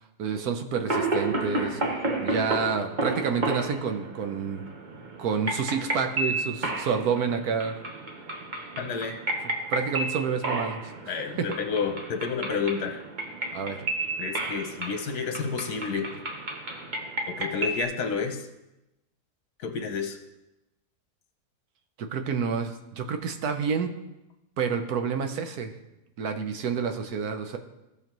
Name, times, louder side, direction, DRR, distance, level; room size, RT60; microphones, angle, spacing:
voice 1, 0.2-1.8 2.2-4.6 5.2-7.7 9.7-11.1 13.5-13.8 22.0-23.9 24.6-25.7 26.2-27.6, right 6 dB, 70° right, 6 dB, 1.3 m, -29 dB
sound 1, 0.9-17.8, right 2 dB, 35° right, 1.1 m, -32 dB
voice 2, 8.8-9.2 11.1-13.0 14.2-16.1 17.3-18.5 19.6-20.2, left 5 dB, 75° left, 5 dB, 1.6 m, -30 dB
16.5 x 6.3 x 3.0 m, 0.96 s
omnidirectional pair, 1.7 m